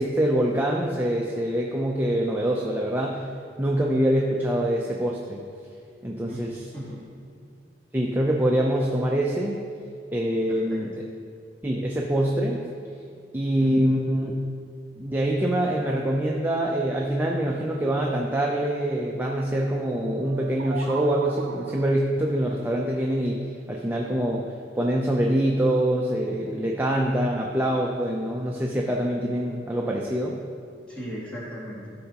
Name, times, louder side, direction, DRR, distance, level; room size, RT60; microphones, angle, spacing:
voice 1, 0.0-3.2 3.6-5.4 6.0-6.6 7.9-9.6 10.1-10.9 11.6-12.6 13.3-14.3 15.0-24.5 24.8-30.4, right 1 dB, 10° right, -2 dB, 0.5 m, -25 dB
voice 2, 6.3-7.0 10.5-10.8 13.6-13.9 30.8-31.8, equal, 5° left, -8 dB, 2.2 m, -38 dB
sound 1, 20.2-22.0, right 4 dB, 85° right, 0.6 m, -37 dB
13.5 x 5.5 x 2.9 m, 2.3 s
head